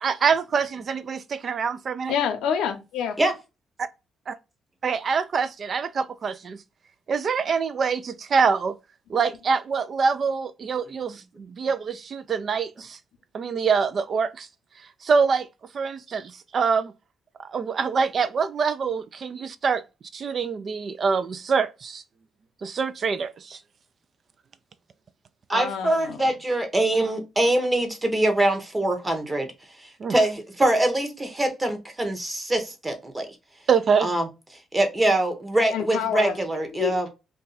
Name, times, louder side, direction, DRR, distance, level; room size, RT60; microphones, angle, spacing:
voice 1, 0.0-2.1 4.8-6.6 7.1-8.7 9.1-13.0 13.3-14.5 15.0-15.5 15.7-16.9 17.4-19.8 20.1-22.0 22.6-23.6 30.0-30.2 33.7-34.1, right 5 dB, 50° right, 0.3 m, -25 dB
voice 2, 2.1-3.2 25.5-26.3 35.7-37.1, left 8 dB, 90° left, 0.6 m, -28 dB
voice 3, 25.5-29.5 29.8-33.3 34.0-34.3 34.7-37.1, right 1 dB, 20° right, 0.9 m, -24 dB
2.6 x 2.3 x 3.9 m
cardioid pair, 90°, 0 cm